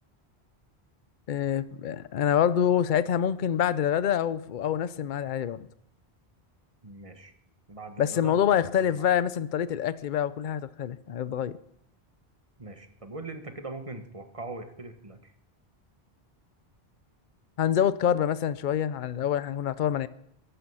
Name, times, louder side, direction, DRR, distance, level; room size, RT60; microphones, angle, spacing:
voice 1, 1.3-5.7 8.0-11.5 17.6-20.1, left 9 dB, 55° left, 0.7 m, -26 dB
voice 2, 6.8-7.3 7.7-8.3 8.6-9.1 12.6-15.3, right 3 dB, 35° right, 1.5 m, -41 dB
14.5 x 11.0 x 5.6 m
omnidirectional pair, 1.1 m